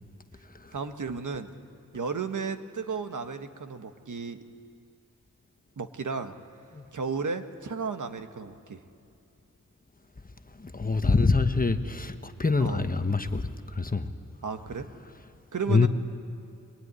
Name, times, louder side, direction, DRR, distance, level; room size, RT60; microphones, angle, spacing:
voice 1, 0.7-1.5 1.9-4.4 5.8-6.3 6.9-8.8 12.6-12.8 14.4-14.9 15.5-15.9, right 5 dB, 65° right, 8 dB, 1.4 m, -33 dB
voice 2, 10.6-14.1 15.7-15.9, left 4 dB, 25° left, 8 dB, 1.1 m, -25 dB
24.0 x 22.5 x 9.7 m, 2.7 s
wide cardioid pair, 105°, 32 cm